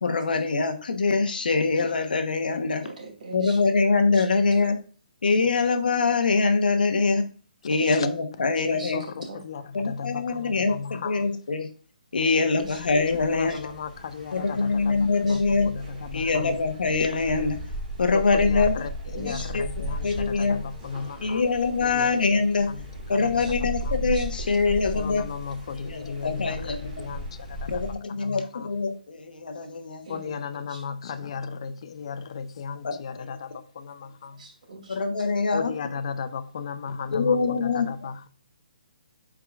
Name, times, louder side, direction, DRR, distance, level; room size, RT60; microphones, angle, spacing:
voice 1, 0.0-2.8 3.3-4.8 5.2-7.2 7.6-9.0 9.7-11.7 12.1-13.7 14.3-15.7 16.1-17.6 18.0-18.7 19.3-19.6 20.0-20.6 21.2-22.7 23.1-25.3 25.8-26.8 27.7-30.1 32.8-33.4 34.9-35.7 37.1-37.9, left 4 dB, 75° left, 1.1 m, -24 dB
voice 2, 2.8-3.6 4.1-4.2 8.7-8.9 9.2-9.4 12.5-12.8 13.5-13.6 15.3-15.4 19.1-19.5 20.0-20.2 23.4-23.5 24.1-24.3 24.7-24.8 30.0-30.8 34.4-35.0, right 2 dB, 55° right, 2.8 m, -42 dB
voice 3, 7.7-8.1 8.6-9.1 9.3-11.3 13.3-16.6 18.1-21.4 21.8-22.1 22.7-22.8 23.1-23.4 23.8-23.9 24.9-28.7 30.1-34.5 35.5-38.3, left 6 dB, 40° left, 0.5 m, -36 dB
sound 1, 12.6-27.9, equal, 20° right, 1.9 m, -36 dB
8.3 x 4.8 x 2.4 m
hypercardioid pair, 175°, 5 cm